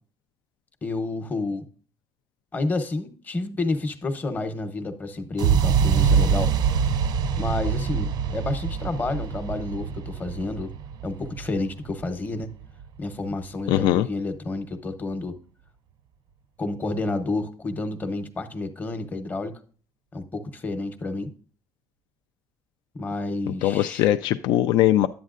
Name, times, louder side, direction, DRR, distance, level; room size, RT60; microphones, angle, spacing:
voice 1, 0.8-1.6 2.5-6.6 7.4-10.7 11.0-12.5 13.0-15.4 16.6-19.5 20.1-21.3 22.9-24.1, left 2 dB, 25° left, 8 dB, 0.8 m, -30 dB
sound 1, 5.4-13.3, right 7 dB, 65° right, 0.5 m, -25 dB
voice 2, 13.7-14.1 23.6-25.1, left 13 dB, 85° left, 10 dB, 0.3 m, -20 dB
11.0 x 8.2 x 2.5 m, 0.42 s
cardioid pair, 145°, 8 cm